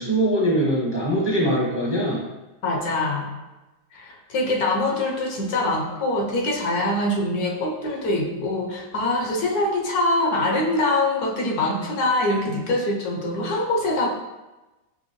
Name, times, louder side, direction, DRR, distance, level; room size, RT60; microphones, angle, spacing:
voice 1, 0.0-2.2, right 1 dB, 25° right, -6 dB, 0.5 m, -22 dB
voice 2, 2.6-3.3 3.9-14.1, left 2 dB, 70° left, 0 dB, 1.2 m, -24 dB
5.4 x 2.8 x 2.9 m, 1.1 s
omnidirectional pair, 1.8 m